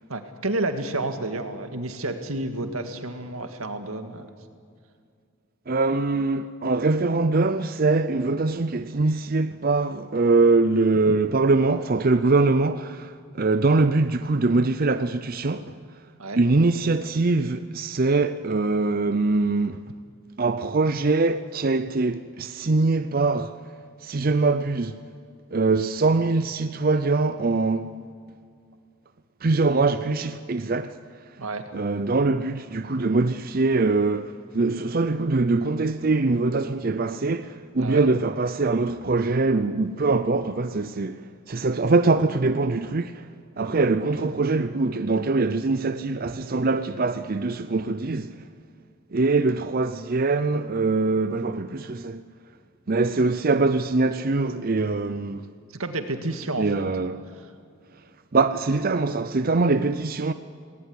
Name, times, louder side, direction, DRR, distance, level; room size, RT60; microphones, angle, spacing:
voice 1, 0.1-4.3 11.1-11.2 16.2-16.4 31.4-31.7 37.8-38.0 55.7-56.8, right 2 dB, 90° right, 2.0 m, -30 dB
voice 2, 5.7-15.8 16.4-19.8 20.4-23.6 24.0-25.0 25.5-27.9 29.4-31.0 31.7-43.3 43.6-48.4 49.1-52.2 52.9-55.5 56.6-57.2 58.3-60.3, right 3 dB, 45° right, 0.6 m, -23 dB
18.5 x 18.5 x 9.7 m
head